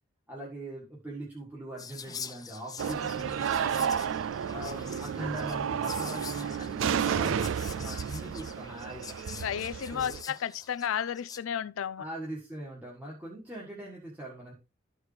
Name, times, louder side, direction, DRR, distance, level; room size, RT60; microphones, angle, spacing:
voice 1, 0.3-3.9 4.5-9.1 9.9-10.2 12.0-14.5, right 1 dB, 10° right, 1.7 m, -41 dB
Whispering, 1.8-11.4, left 6 dB, 20° left, 0.5 m, -45 dB
sound 1, 2.8-10.2, right 8 dB, 75° right, 0.3 m, -32 dB
voice 2, 9.4-12.0, left 8 dB, 90° left, 0.4 m, -33 dB
13.0 x 4.8 x 3.3 m
head